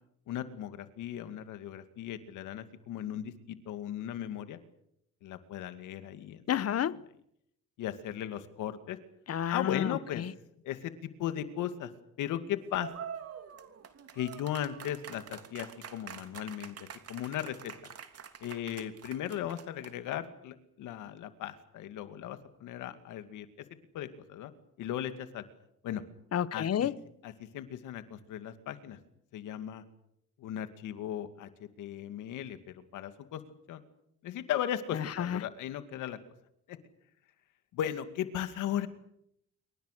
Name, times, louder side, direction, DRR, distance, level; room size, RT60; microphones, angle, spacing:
voice 1, 0.3-4.6 5.2-6.4 7.8-9.0 9.5-10.2 10.6-11.9 12.2-12.9 14.1-16.8 17.1-17.7 18.4-23.5 23.9-24.5 24.8-25.4 25.8-26.0 26.5-26.9 27.2-29.0 29.3-29.8 30.4-33.4 33.7-33.8 34.2-36.2 36.7-36.8 37.7-38.9, left 11 dB, 90° left, 2.3 m, -37 dB
voice 2, 6.5-7.0 9.3-10.3 26.3-27.0 34.9-35.4, left 9 dB, 55° left, 1.1 m, -30 dB
sound 1, 12.7-20.1, right 7 dB, 55° right, 3.0 m, -46 dB
27.5 x 24.5 x 6.7 m
cardioid pair, 90°, 30 cm